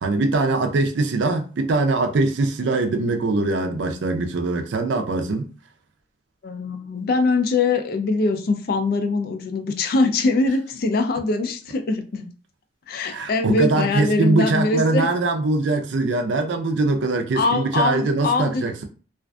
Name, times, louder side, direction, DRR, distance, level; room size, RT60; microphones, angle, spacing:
voice 1, 0.0-5.5 13.1-18.8, right 3 dB, 80° right, 0.4 m, -22 dB
voice 2, 6.4-12.3 12.9-15.1 17.4-18.6, left 3 dB, 55° left, 0.4 m, -22 dB
2.4 x 2.4 x 2.2 m
head